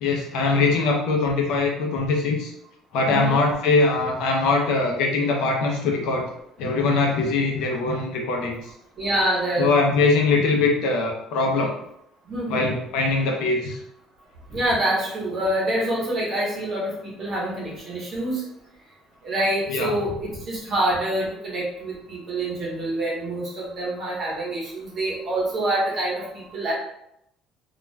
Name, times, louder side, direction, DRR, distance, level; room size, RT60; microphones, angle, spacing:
voice 1, 0.0-2.5 2.9-6.3 6.6-8.5 9.6-11.7 12.5-13.8 19.7-20.0, left 3 dB, 65° left, 0 dB, 0.6 m, -22 dB
voice 2, 3.1-3.4 9.0-9.7 12.3-12.7 14.5-18.4 19.2-26.7, right 1 dB, 30° right, -5 dB, 0.9 m, -26 dB
2.3 x 2.2 x 3.2 m, 0.78 s
cardioid pair, 175°, 0 cm